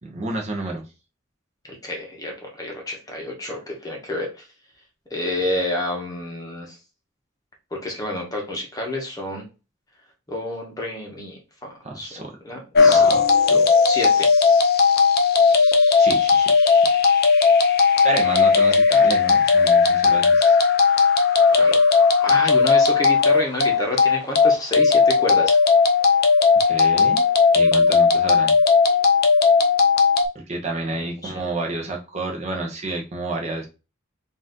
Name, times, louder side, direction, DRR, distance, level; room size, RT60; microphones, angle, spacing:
voice 1, 0.0-0.8 11.8-12.3 12.8-13.2 13.5-13.6 16.0-16.8 18.0-20.6 26.6-27.3 27.5-28.6 30.3-33.7, right 2 dB, 30° right, 1 dB, 0.7 m, -30 dB
voice 2, 1.7-4.4 5.1-6.8 7.7-9.5 10.3-11.7 11.9-13.1 13.9-14.3 21.5-21.8 22.2-25.6 31.0-31.5, left 1 dB, 15° left, 0 dB, 0.9 m, -29 dB
sound 1, 12.7-30.3, left 5 dB, 45° left, 0.6 m, -16 dB
3.9 x 2.5 x 3.8 m, 0.30 s
head